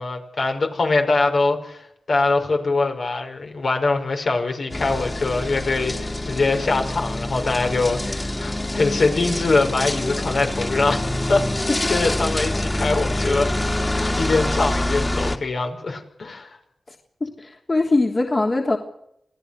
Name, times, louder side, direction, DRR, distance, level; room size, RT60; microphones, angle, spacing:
voice 1, 0.0-11.4 11.9-13.5 13.9-16.5, left 3 dB, 70° left, 3 dB, 5.4 m, -23 dB
sound 1, 4.7-15.4, left 1 dB, 25° left, 2.9 m, -25 dB
voice 2, 16.9-18.8, left 2 dB, 40° left, 2 dB, 3.2 m, -22 dB
27.0 x 18.0 x 6.7 m, 0.77 s
cardioid pair, 65°, 0 cm